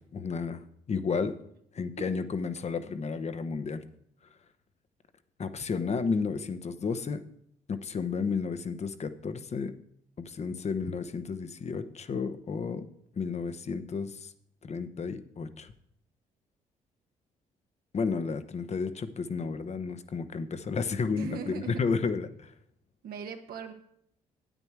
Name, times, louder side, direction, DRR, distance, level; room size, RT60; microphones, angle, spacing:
voice 1, 0.1-1.3 1.7-3.8 5.4-7.2 7.7-9.7 10.2-12.9 13.2-14.3 14.6-15.7 17.9-22.5, left 5 dB, 45° left, 11 dB, 1.0 m, -32 dB
voice 2, 21.2-21.8 23.0-23.7, right 5 dB, 70° right, 5 dB, 1.4 m, -39 dB
9.1 x 9.0 x 4.7 m, 0.71 s
supercardioid pair, 55°, 16 cm